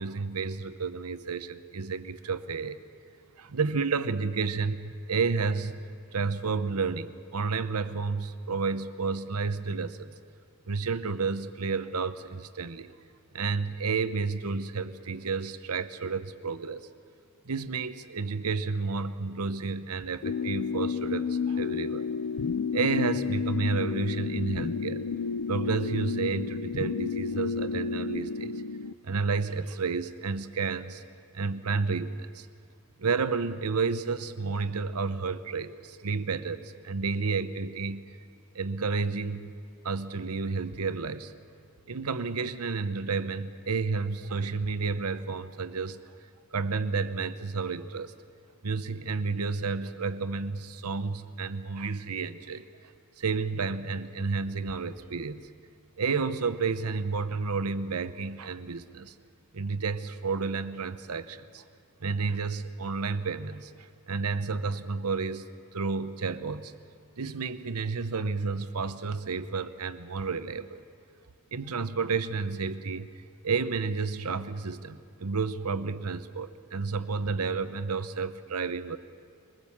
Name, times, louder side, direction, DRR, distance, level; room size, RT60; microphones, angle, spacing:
voice 1, 0.0-2.8 3.4-5.8 6.1-10.1 10.7-12.9 13.3-16.9 17.4-22.1 22.7-25.0 25.5-28.6 29.0-31.0 31.3-32.5 33.0-38.0 38.5-39.5 39.8-41.3 41.9-46.0 46.5-48.1 48.6-52.6 53.2-55.5 56.0-59.1 59.5-61.6 62.0-65.5 65.7-66.7 67.2-70.8 71.5-73.1 73.4-79.0, right 4 dB, 80° right, 11 dB, 0.9 m, -31 dB
sound 1, 20.2-28.9, left 5 dB, 80° left, 0.5 m, -31 dB
23.5 x 20.0 x 7.3 m, 2.3 s
head